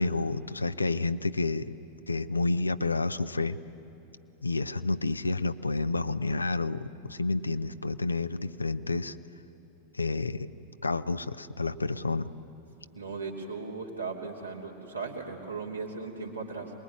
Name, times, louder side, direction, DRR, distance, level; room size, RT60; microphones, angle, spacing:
voice 1, 0.0-1.7 2.1-3.6 4.4-9.2 9.9-10.5 10.8-12.3, left 3 dB, 80° left, 13 dB, 0.7 m, -29 dB
voice 2, 12.9-16.7, right 4 dB, 85° right, -2 dB, 3.2 m, -37 dB
25.5 x 21.0 x 9.6 m, 3.0 s
figure-of-eight pair, 90°, 0 cm